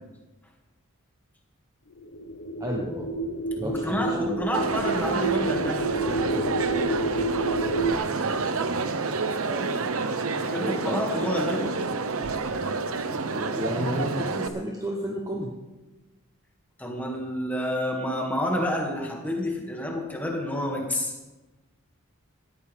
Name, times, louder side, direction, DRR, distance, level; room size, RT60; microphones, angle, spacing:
sound 1, 2.0-7.9, right 2 dB, 60° left, 0.8 m, -29 dB
voice 1, 2.6-3.1 3.6-4.4 9.4-9.8 10.5-11.1 13.3-15.6, equal, 15° right, 0 dB, 1.0 m, -32 dB
voice 2, 3.6-6.3 10.5-11.7 16.8-21.1, left 1 dB, 10° left, -1 dB, 2.3 m, -29 dB
Crowd, 4.5-14.5, right 4 dB, 80° right, 0.9 m, -28 dB
18.5 x 14.0 x 3.6 m, 1.1 s
head